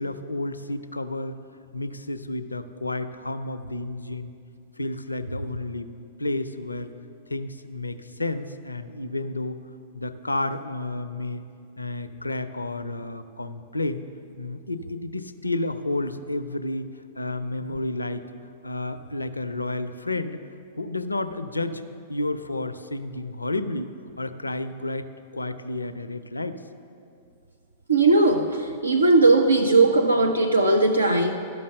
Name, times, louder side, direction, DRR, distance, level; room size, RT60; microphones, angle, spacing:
voice 1, 0.0-1.4 1.7-4.3 4.8-5.9 6.2-6.9 7.3-9.6 9.9-11.5 11.8-14.0 14.4-18.3 18.6-20.4 20.8-21.8 22.1-23.9 24.2-25.1 25.3-26.6, left 2 dB, 85° left, 11 dB, 0.4 m, -31 dB
voice 2, 27.9-31.3, right 2 dB, 80° right, 5 dB, 0.5 m, -18 dB
12.5 x 5.5 x 6.5 m, 2.5 s
figure-of-eight pair, 100°, 0 cm